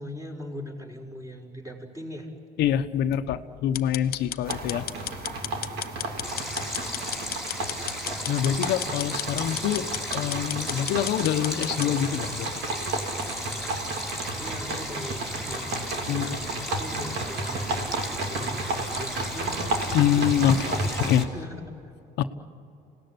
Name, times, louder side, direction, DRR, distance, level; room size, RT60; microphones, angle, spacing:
voice 1, 0.0-2.3 14.4-19.6 20.5-20.9 21.3-21.6, equal, 20° right, 0 dB, 5.5 m, -40 dB
voice 2, 2.6-4.9 8.3-9.9 10.1-12.6 16.1-16.3 19.9-21.3 22.2-22.3, left 10 dB, 80° left, 8 dB, 1.0 m, -25 dB
sound 1, 3.7-11.9, left 13 dB, 65° left, 0.7 m, -35 dB
sound 2, 4.4-21.2, right 2 dB, 75° right, 3.1 m, -33 dB
Stream, 6.2-21.2, left 1 dB, ahead, 4.3 m, -36 dB
27.0 x 18.0 x 9.8 m, 2.7 s
cardioid pair, 110°, 17 cm